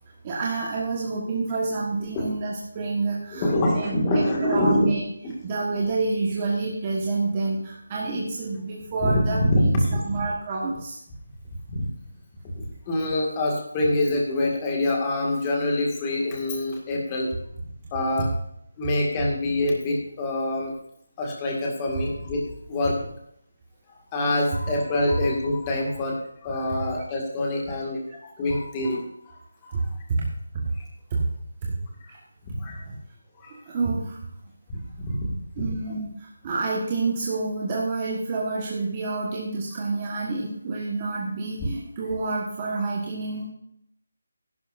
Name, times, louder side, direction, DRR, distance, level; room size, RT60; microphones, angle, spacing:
voice 1, 0.2-5.0 5.4-9.4 10.1-11.0 26.7-27.0 28.1-28.2 29.7-29.8 30.2-30.3 31.6-31.7 32.1-32.2 33.7-34.2 35.6-43.5, right 3 dB, 20° right, -4 dB, 1.5 m, -28 dB
voice 2, 3.3-4.9 5.2-5.3 9.0-10.0 11.7-11.9 12.6-17.3 17.9-18.3 18.8-20.7 21.2-22.4 22.7-23.0 24.1-29.0 29.7-29.8 30.7-30.8 32.5-32.9 33.4-33.6 34.7-35.4, left 1 dB, 15° left, -1 dB, 2.0 m, -25 dB
15.5 x 11.5 x 2.6 m, 0.72 s
figure-of-eight pair, 180°, 0 cm